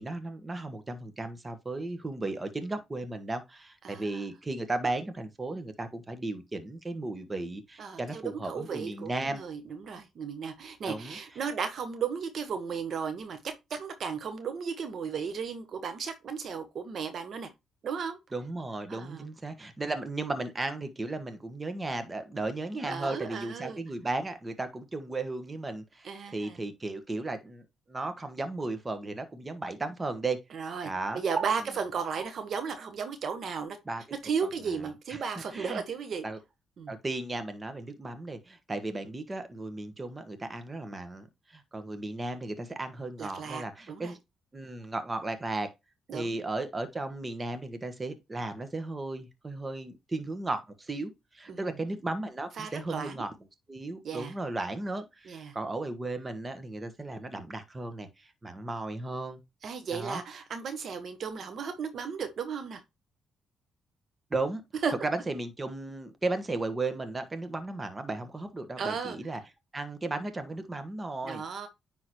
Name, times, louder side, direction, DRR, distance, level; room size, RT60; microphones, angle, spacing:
voice 1, 0.0-9.4 10.8-11.2 18.3-31.5 32.2-32.3 33.8-34.0 35.1-35.2 35.5-35.8 36.2-36.4 36.9-44.2 44.5-45.7 46.1-53.3 53.7-59.4 59.9-60.2 64.3-64.6 65.0-69.4 69.7-71.4, right 2 dB, 25° right, 1.4 m, -35 dB
voice 2, 3.8-4.2 7.8-17.5 17.8-18.2 18.9-19.3 22.8-23.8 26.0-26.6 30.5-33.8 34.2-36.3 36.8-36.9 43.2-44.1 46.1-46.4 51.5-51.6 52.6-53.2 54.0-54.3 55.3-55.5 59.6-62.8 64.8-64.9 68.8-69.2 71.2-71.7, right 6 dB, 60° right, 1.2 m, -35 dB
9.7 x 3.8 x 3.0 m
cardioid pair, 80°, 0 cm